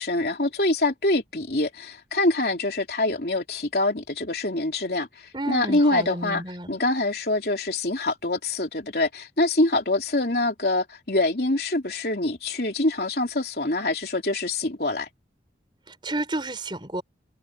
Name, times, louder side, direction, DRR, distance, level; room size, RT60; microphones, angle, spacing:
voice 1, 0.0-6.4 6.7-15.1, left 2 dB, 60° left, 3.5 m, -25 dB
voice 2, 5.3-6.8 15.9-17.0, right 1 dB, 25° right, 5.7 m, -31 dB
head